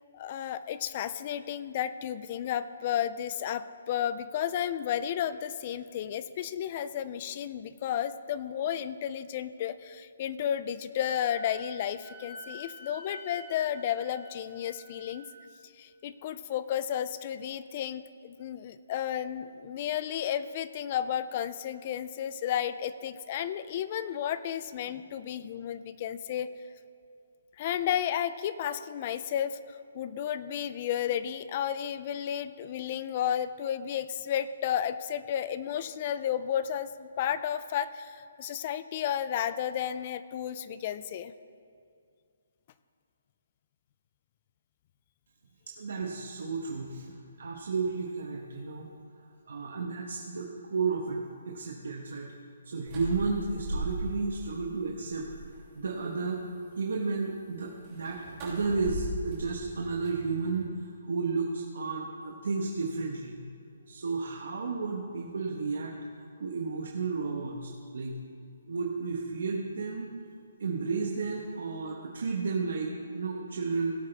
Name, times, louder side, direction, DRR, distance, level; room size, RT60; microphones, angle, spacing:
voice 1, 0.1-15.3 15.8-26.5 27.6-41.3, left 10 dB, 30° left, 14 dB, 0.3 m, -32 dB
Wind instrument woodwind instrument, 11.0-15.4, equal, ahead, 2.3 m, -48 dB
voice 2, 45.7-48.9 49.5-52.3 52.6-55.3 55.7-56.4 56.8-63.4 63.9-65.9 66.4-68.2 68.7-70.1 70.6-73.9, right 4 dB, 70° right, -1 dB, 1.2 m, -32 dB
sound 1, 52.8-54.4 54.8-55.6 57.8-60.7, right 1 dB, 25° right, 2.7 m, -38 dB
17.0 x 8.1 x 3.4 m, 2.3 s
hypercardioid pair, 170°, 0 cm